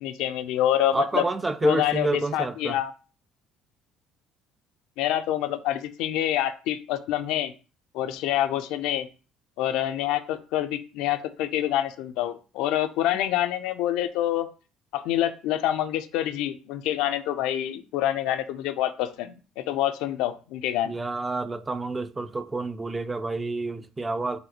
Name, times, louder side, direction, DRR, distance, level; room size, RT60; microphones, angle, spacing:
voice 1, 0.0-1.2 1.6-2.9 5.0-7.5 7.9-9.1 9.6-14.5 14.9-20.9, left 12 dB, 80° left, 0.3 m, -26 dB
voice 2, 0.9-2.8 20.9-24.4, right 3 dB, 20° right, 0.3 m, -29 dB
4.0 x 2.1 x 2.8 m
supercardioid pair, 90°, 0 cm